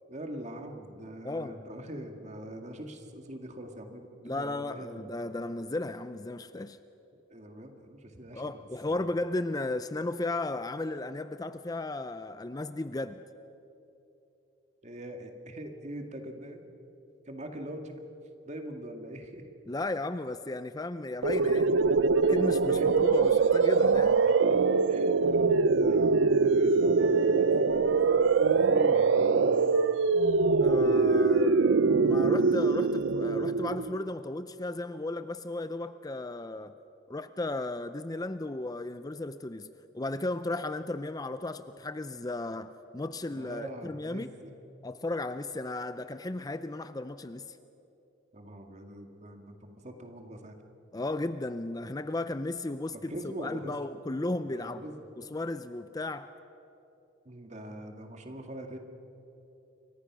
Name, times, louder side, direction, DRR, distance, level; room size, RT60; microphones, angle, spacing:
voice 1, 0.1-5.1 7.1-9.0 14.8-16.6 17.3-18.0 18.5-19.5 22.7-23.0 24.4-24.6 24.9-26.1 26.4-29.7 43.3-44.5 48.3-50.6 52.9-53.7 54.4-55.1 57.3-58.8, right 1 dB, 40° right, 4 dB, 2.1 m, -43 dB
voice 2, 4.2-6.8 8.3-13.2 19.7-21.8 22.2-24.2 30.6-31.7 32.0-36.7 37.1-44.3 44.8-47.6 50.9-54.8 55.2-56.3, left 2 dB, 20° left, 11 dB, 0.5 m, -35 dB
sound 1, 21.2-34.0, right 4 dB, 80° right, 0.6 m, -23 dB
28.5 x 24.0 x 6.2 m, 2.9 s
head